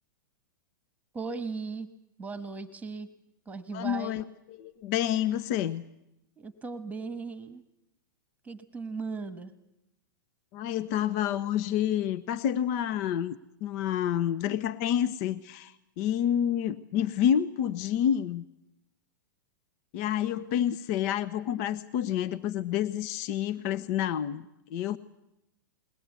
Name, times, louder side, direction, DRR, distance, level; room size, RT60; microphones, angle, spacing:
voice 1, 1.1-1.9 2.2-3.1 3.5-4.2 6.4-7.6 8.4-9.5, right 4 dB, 15° right, 12 dB, 1.3 m, -37 dB
voice 2, 3.7-4.2 4.6-5.8 10.5-18.4 19.9-25.0, left 10 dB, 50° left, 15 dB, 0.7 m, -29 dB
21.5 x 19.0 x 8.3 m, 0.88 s
hypercardioid pair, 110°, 11 cm